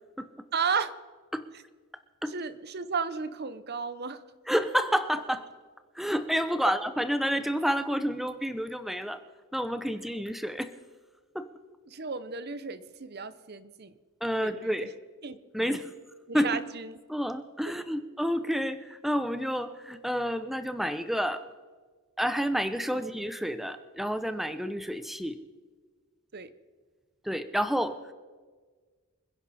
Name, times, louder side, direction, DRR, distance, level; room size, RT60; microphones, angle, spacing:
voice 1, 0.5-0.9 2.3-4.2 6.6-6.7 11.9-14.0 14.4-14.9 15.2-15.8 16.3-17.0 26.3-26.5, right 5 dB, 45° right, 14 dB, 0.8 m, -34 dB
voice 2, 4.5-5.4 5.9-9.2 9.5-10.7 11.3-11.5 14.2-14.9 15.5-15.9 16.3-16.5 17.1-21.4 22.2-25.4 27.2-28.1, equal, ahead, 11 dB, 0.7 m, -29 dB
26.5 x 10.5 x 4.2 m, 1.5 s
head